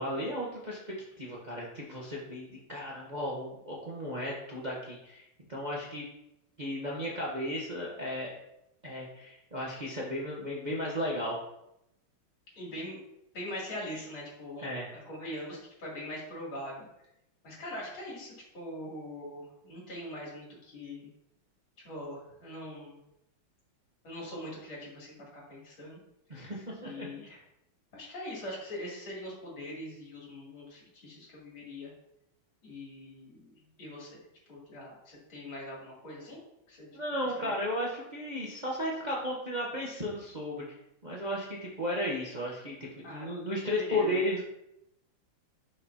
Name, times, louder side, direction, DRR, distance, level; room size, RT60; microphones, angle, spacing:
voice 1, 0.0-5.2 5.5-6.1 6.6-8.4 8.8-11.4 14.6-14.9 26.3-27.1 36.9-40.6 41.0-44.4, left 1 dB, 30° right, -4 dB, 0.9 m, -34 dB
voice 2, 12.6-13.0 13.3-16.8 17.4-21.1 21.8-23.0 24.0-26.0 26.8-27.4 27.9-31.9 32.6-34.2 34.5-36.4 36.7-36.9 37.4-37.5 43.0-43.3 43.8-44.2, left 1 dB, 75° left, -5 dB, 3.8 m, -42 dB
10.5 x 5.4 x 2.8 m, 0.83 s
omnidirectional pair, 2.3 m